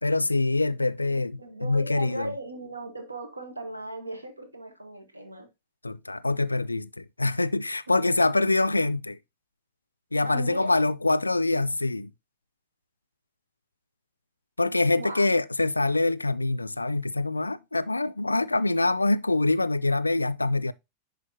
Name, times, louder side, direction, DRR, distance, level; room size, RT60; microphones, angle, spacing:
voice 1, 0.0-2.3 5.8-9.2 10.1-12.1 14.6-20.7, left 2 dB, 80° left, 0.3 m, -25 dB
voice 2, 1.1-5.5 7.9-8.5 10.2-10.8 15.0-15.2, right 1 dB, 80° right, 1.4 m, -37 dB
10.5 x 4.0 x 2.7 m
figure-of-eight pair, 90°, 0 cm